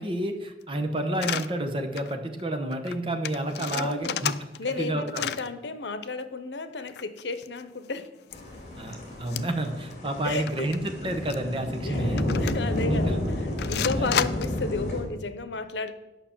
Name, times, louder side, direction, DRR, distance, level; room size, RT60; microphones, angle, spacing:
voice 1, 0.0-4.3 4.7-5.2 8.8-12.4 12.9-13.2 14.0-14.3, right 1 dB, 30° right, 5 dB, 1.0 m, -30 dB
sound 1, 1.2-1.5 2.0-2.1 2.4-2.5 2.7-3.0 3.2-4.8 5.1-5.5 6.8-7.9 8.3-8.4 9.3-9.7 9.9-10.0 10.5-10.8 11.3-11.4 12.2-12.8 13.6-14.6, left 9 dB, 70° left, 0.4 m, -31 dB
voice 2, 3.7-4.3 4.6-8.1 10.2-10.7 11.9-15.9, left 3 dB, 85° left, 11 dB, 0.8 m, -33 dB
sound 2, 8.3-15.0, left 1 dB, 40° left, 2.2 m, -31 dB
9.3 x 5.8 x 7.2 m, 1.1 s
head